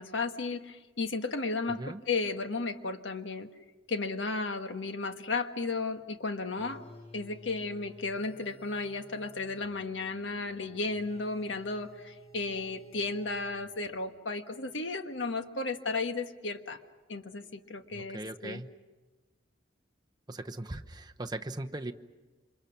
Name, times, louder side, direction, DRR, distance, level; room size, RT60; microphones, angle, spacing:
voice 1, 0.0-3.5 3.9-6.8 7.1-16.8 17.1-18.6, left 3 dB, 85° left, 7 dB, 1.4 m, -34 dB
voice 2, 1.7-2.0 17.9-18.7 20.3-21.9, right 2 dB, 20° right, 5 dB, 1.0 m, -39 dB
sound 1, 6.6-14.0, equal, 35° left, 2.8 m, -54 dB
28.0 x 26.0 x 6.0 m, 1.2 s
head